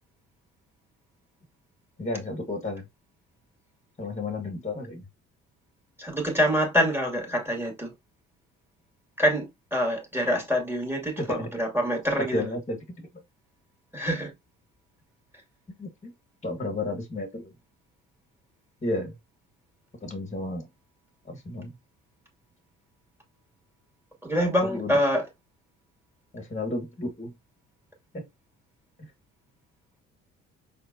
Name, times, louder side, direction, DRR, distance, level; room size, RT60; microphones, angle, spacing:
voice 1, 2.0-2.8 4.0-5.0 11.2-11.5 12.2-13.1 15.8-16.1 16.4-17.5 18.8-19.2 20.0-20.7 21.3-21.7 24.6-24.9 26.3-27.3 28.1-28.3, left 2 dB, 20° left, 1.5 m, -32 dB
voice 2, 6.0-7.9 9.2-12.5 13.9-14.3 24.2-25.3, equal, 5° right, 2.4 m, -26 dB
4.4 x 3.5 x 2.7 m
hypercardioid pair, 50°, 36 cm